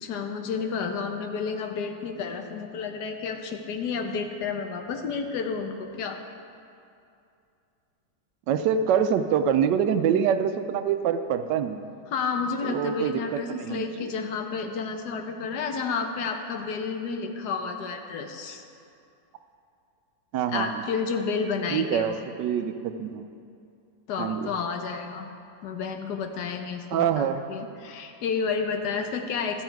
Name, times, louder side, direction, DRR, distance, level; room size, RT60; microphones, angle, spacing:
voice 1, 0.0-6.2 12.1-18.6 20.5-22.2 24.1-25.3 25.6-29.6, left 5 dB, 70° left, 5 dB, 1.4 m, -31 dB
voice 2, 8.5-11.9 12.6-14.1 20.3-20.7 21.7-22.7 23.0-23.2 24.2-24.5 26.9-27.4, right 8 dB, 85° right, 9 dB, 1.2 m, -25 dB
13.0 x 8.7 x 4.6 m, 2.5 s
omnidirectional pair, 1.9 m